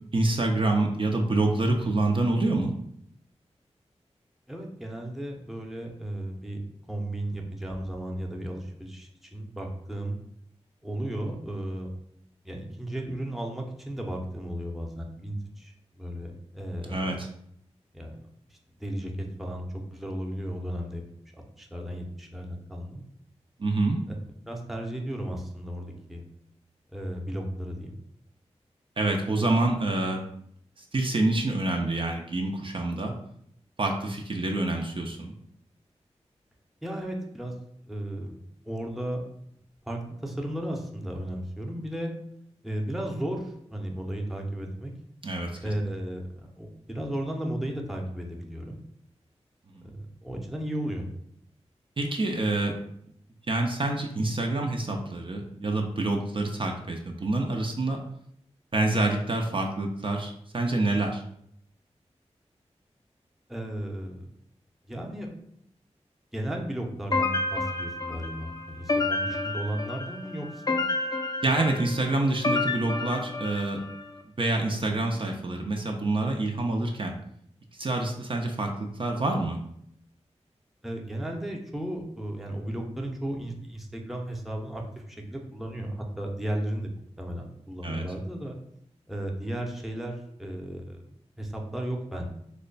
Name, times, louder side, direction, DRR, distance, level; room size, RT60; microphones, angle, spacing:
voice 1, 0.1-2.7 16.9-17.3 23.6-24.0 29.0-30.3 30.8-33.1 33.8-35.3 45.2-45.7 49.7-49.9 52.0-52.8 53.5-58.0 58.7-61.2 71.4-73.8 74.4-77.2 77.7-79.6 87.8-88.0, right 2 dB, 50° right, 2 dB, 0.5 m, -27 dB
voice 2, 4.5-6.6 6.9-10.2 10.8-11.9 12.4-17.1 17.9-18.2 18.5-21.0 21.6-23.0 24.5-26.2 26.9-28.0 36.8-37.5 37.9-39.2 39.9-42.1 42.6-44.9 45.6-48.8 49.8-51.1 63.5-64.3 64.9-65.3 66.3-70.8 80.8-86.9 87.2-88.6 89.1-91.0 91.4-92.3, right 1 dB, ahead, 0 dB, 0.7 m, -34 dB
sound 1, 67.1-74.0, left 3 dB, 35° left, 0.4 m, -30 dB
3.0 x 2.2 x 3.9 m, 0.71 s
cardioid pair, 45°, 12 cm